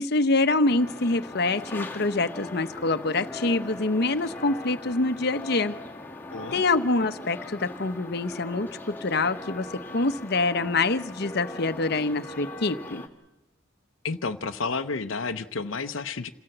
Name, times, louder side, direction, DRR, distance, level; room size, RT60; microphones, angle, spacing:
voice 1, 0.0-5.8 6.5-8.7 9.0-9.7 9.9-13.0, left 3 dB, 55° left, 9 dB, 0.9 m, -25 dB
sound 1, 0.6-13.1, left 2 dB, 10° left, 1.9 m, -40 dB
voice 2, 6.3-6.6 14.0-16.3, left 4 dB, 85° left, 8 dB, 0.7 m, -31 dB
27.5 x 17.0 x 7.9 m, 0.98 s
head